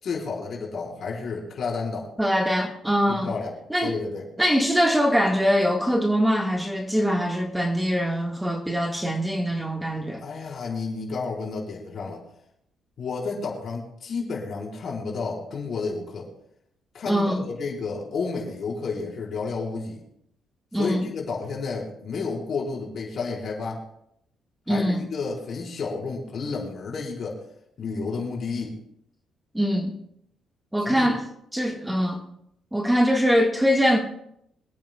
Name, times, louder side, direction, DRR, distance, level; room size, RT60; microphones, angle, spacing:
voice 1, 0.0-2.1 3.1-3.5 3.8-4.2 10.2-12.2 13.0-16.3 16.9-20.0 20.7-23.8 24.7-27.4 27.8-28.8 30.8-31.1, left 4 dB, 55° left, -2 dB, 4.3 m, -31 dB
voice 2, 2.2-3.3 3.7-4.0 4.4-10.2 17.1-17.4 20.7-21.0 24.7-25.0 29.5-29.9 30.7-31.2 31.5-32.2 32.7-34.0, equal, 5° right, 2 dB, 1.6 m, -23 dB
26.0 x 9.1 x 2.3 m, 0.74 s
cardioid pair, 90°, 0 cm